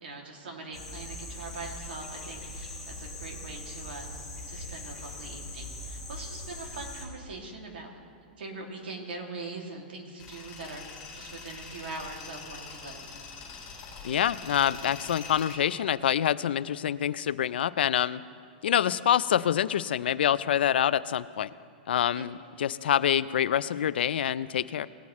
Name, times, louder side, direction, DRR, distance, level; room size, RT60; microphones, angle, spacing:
voice 1, 0.0-4.1 4.5-8.0 8.4-10.8 11.1-13.2 22.2-22.3, right 3 dB, 90° right, 1 dB, 2.4 m, -42 dB
sound 1, 0.7-7.0, left 1 dB, ahead, 1.6 m, -41 dB
Tools, 10.2-15.6, left 5 dB, 25° left, 3.4 m, -44 dB
voice 2, 14.0-18.2 18.6-21.5 21.9-24.9, left 10 dB, 90° left, 17 dB, 0.4 m, -26 dB
18.5 x 9.2 x 3.1 m, 2.3 s
supercardioid pair, 175°, 5 cm